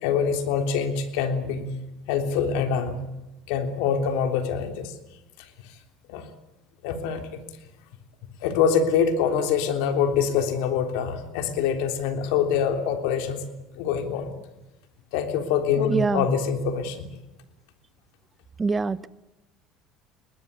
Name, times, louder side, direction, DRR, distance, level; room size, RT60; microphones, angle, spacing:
voice 1, 0.0-1.7 2.1-2.9 3.5-4.9 5.4-5.8 6.1-6.3 6.8-7.4 8.4-13.4 13.8-14.3 15.1-17.1, left 7 dB, 80° left, 6 dB, 3.4 m, -25 dB
voice 2, 15.9-16.3 18.6-19.1, right 4 dB, 20° right, 16 dB, 0.9 m, -24 dB
22.5 x 19.5 x 8.3 m, 1.0 s
supercardioid pair, 105°, 0 cm